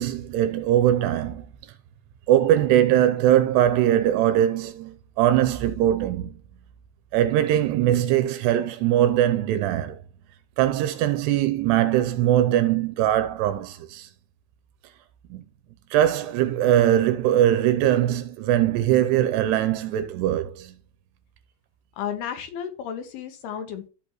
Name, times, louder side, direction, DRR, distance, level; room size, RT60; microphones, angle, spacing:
voice 1, 0.0-1.5 2.3-6.4 7.1-10.0 10.6-14.1 15.3-15.4 15.9-20.8, right 12 dB, 80° right, 2.6 m, -21 dB
voice 2, 22.0-23.9, left 8 dB, 75° left, 2.8 m, -33 dB
15.0 x 5.1 x 3.1 m
omnidirectional pair, 5.2 m